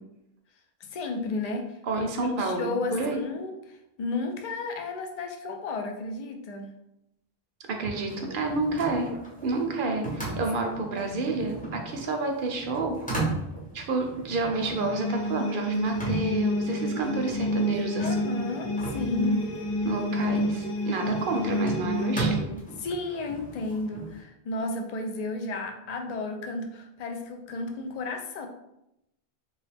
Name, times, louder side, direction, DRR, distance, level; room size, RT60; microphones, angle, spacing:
voice 1, 0.9-1.7 2.2-3.5 4.0-6.7 18.0-19.4 22.8-28.5, left 3 dB, 55° left, 4 dB, 0.5 m, -33 dB
voice 2, 1.9-3.3 7.7-13.0 13.7-18.3 19.8-22.5, right 3 dB, 60° right, 3 dB, 0.7 m, -29 dB
sound 1, 8.0-24.2, right 3 dB, 10° left, 0.6 m, -37 dB
sound 2, 14.5-22.4, left 1 dB, 85° left, 0.8 m, -29 dB
2.9 x 2.3 x 3.3 m, 0.85 s
omnidirectional pair, 1.0 m